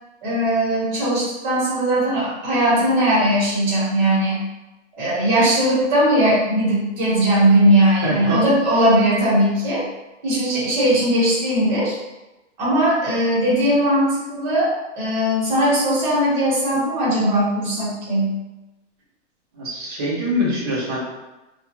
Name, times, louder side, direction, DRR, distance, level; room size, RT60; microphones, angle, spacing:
voice 1, 0.2-4.4 5.0-9.8 10.2-12.0 12.6-18.3, right 1 dB, 40° right, -8 dB, 1.1 m, -19 dB
voice 2, 8.0-8.4 19.5-21.0, equal, 20° right, -6 dB, 0.4 m, -24 dB
2.3 x 2.1 x 2.8 m, 1.0 s
hypercardioid pair, 165°, 36 cm